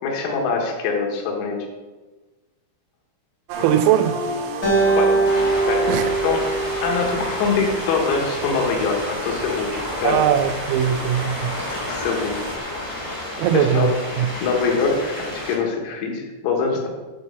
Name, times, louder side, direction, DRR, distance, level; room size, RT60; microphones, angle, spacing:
voice 1, 0.0-1.6 5.0-5.2 5.7-5.9 6.2-6.4 6.8-9.7 10.0-10.2 11.7-12.5 13.5-13.9 14.4-16.9, left 4 dB, 85° left, 0 dB, 4.3 m, -23 dB
sound 1, 3.5-12.6, right 2 dB, 70° right, 3.5 m, -34 dB
voice 2, 3.6-4.2 5.9-6.1 10.0-11.5 13.4-13.9 14.2-14.3, right 10 dB, 85° right, 9 dB, 3.3 m, -19 dB
Acoustic guitar, 4.6-8.0, right 3 dB, 50° left, 1.1 m, -22 dB
sound 2, 5.2-15.6, left 1 dB, 30° left, 0.8 m, -31 dB
11.0 x 4.2 x 6.9 m, 1.2 s
omnidirectional pair, 6.0 m